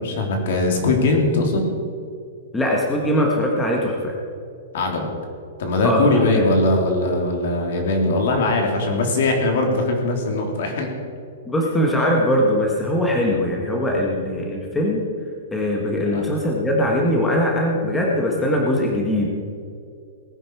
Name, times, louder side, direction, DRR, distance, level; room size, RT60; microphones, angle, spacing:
voice 1, 0.0-1.6 4.7-5.1 5.6-10.9 16.1-16.3, left 2 dB, 55° left, 2 dB, 3.1 m, -20 dB
voice 2, 2.5-4.1 5.8-6.4 11.4-15.0 15.5-19.3, equal, 5° left, -2 dB, 1.4 m, -21 dB
19.0 x 10.5 x 4.7 m, 2.4 s
hypercardioid pair, 170°, 0 cm